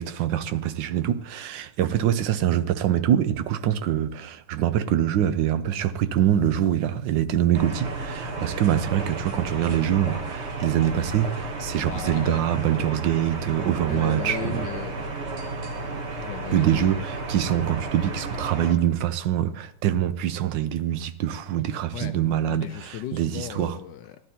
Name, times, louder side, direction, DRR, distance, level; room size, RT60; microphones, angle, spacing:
voice 1, 0.0-14.7 16.5-23.8, right 11 dB, 70° right, 1.3 m, -24 dB
sound 1, 7.5-18.7, right 3 dB, 40° right, 1.1 m, -33 dB
voice 2, 11.8-12.4 13.9-15.1 16.1-17.0 21.9-22.2 22.5-24.2, left 12 dB, 70° left, 1.1 m, -36 dB
14.0 x 11.5 x 2.8 m
omnidirectional pair, 2.2 m